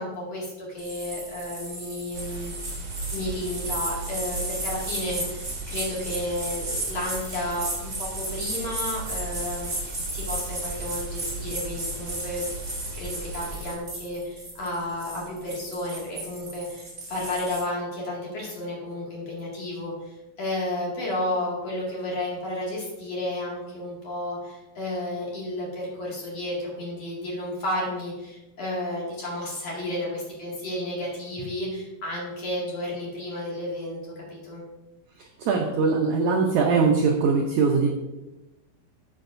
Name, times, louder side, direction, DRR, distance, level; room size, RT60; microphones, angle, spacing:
voice 1, 0.0-2.5 2.8-12.4 12.9-34.6, left 1 dB, 45° left, -4 dB, 2.9 m, -32 dB
sound 1, 0.8-17.6, right 2 dB, 20° right, 2.7 m, -35 dB
sound 2, 2.1-13.8, right 3 dB, 65° right, 2.3 m, -37 dB
voice 2, 35.2-37.9, right 4 dB, 80° right, 1 dB, 1.7 m, -22 dB
12.5 x 7.6 x 2.6 m, 1.0 s
omnidirectional pair, 4.5 m